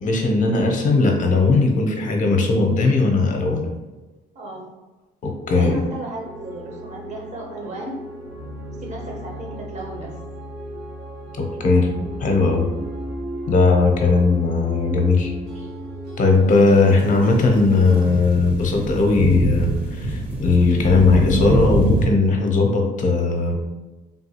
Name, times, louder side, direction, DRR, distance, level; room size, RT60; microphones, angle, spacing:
voice 1, 0.0-3.7 5.2-5.8 11.4-11.9 12.2-12.7 13.5-15.3 16.2-23.5, left 3 dB, 50° left, 2 dB, 0.6 m, -18 dB
voice 2, 4.3-4.7 5.5-8.0 8.8-10.1 15.5-15.7, right 1 dB, 45° right, 0 dB, 0.8 m, -34 dB
sound 1, 6.2-18.2, right 1 dB, 85° right, 0.9 m, -35 dB
sound 2, 16.5-22.1, right 1 dB, 10° right, 0.6 m, -24 dB
3.5 x 2.3 x 2.8 m, 1.1 s
cardioid pair, 110°, 17 cm